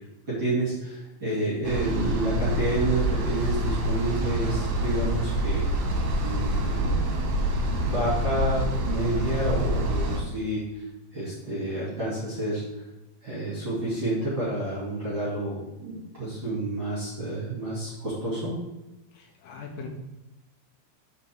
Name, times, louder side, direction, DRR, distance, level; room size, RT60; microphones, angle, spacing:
voice 1, 0.4-5.6 6.2-7.4 7.7-10.6 11.1-12.6 13.2-18.5, right 1 dB, 35° right, -9 dB, 2.2 m, -29 dB
sound 1, 1.6-10.2, right 1 dB, 65° right, 2.5 m, -26 dB
voice 2, 19.1-19.9, left 4 dB, 80° left, 2 dB, 2.4 m, -40 dB
7.1 x 6.6 x 3.6 m, 0.96 s
omnidirectional pair, 5.8 m